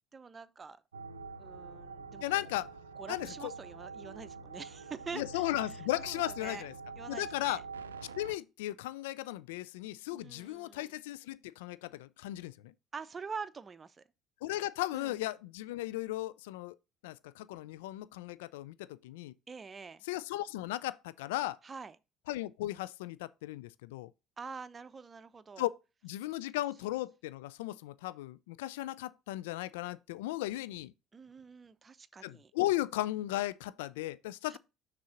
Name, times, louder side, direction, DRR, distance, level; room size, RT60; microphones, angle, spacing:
voice 1, 0.1-0.8 1.4-2.5 3.0-5.8 6.1-6.6 7.0-7.6 10.1-10.9 12.9-14.0 14.9-15.2 19.5-20.0 21.6-22.0 24.4-25.7 31.1-32.5 34.5-34.6, right 5 dB, 30° right, 0.7 m, -46 dB
sound 1, 0.9-8.3, right 4 dB, 90° right, 0.5 m, -45 dB
voice 2, 2.2-2.7 3.1-3.5 5.1-6.7 7.1-7.6 8.2-12.7 14.4-16.8 17.0-19.3 20.1-21.6 22.3-24.1 25.6-25.7 26.0-30.9 32.2-34.6, left 16 dB, 75° left, 0.3 m, -36 dB
6.4 x 3.7 x 5.7 m
hypercardioid pair, 60°, 0 cm